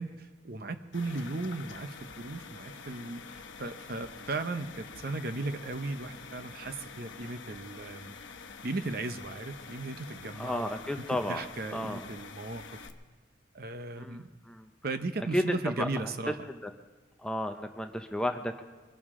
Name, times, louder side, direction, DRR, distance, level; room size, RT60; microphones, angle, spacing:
voice 1, 0.0-8.1 8.6-10.7 11.1-12.9 13.5-14.3 14.8-16.4, right 2 dB, 50° right, 9 dB, 0.7 m, -36 dB
sound 1, 0.9-12.9, left 5 dB, 70° left, 1.0 m, -47 dB
voice 2, 10.4-11.4 11.7-12.1 14.0-14.7 15.3-15.9 16.5-16.7 17.2-18.6, left 1 dB, 5° left, 6 dB, 0.6 m, -33 dB
22.5 x 12.5 x 3.7 m, 1.3 s
head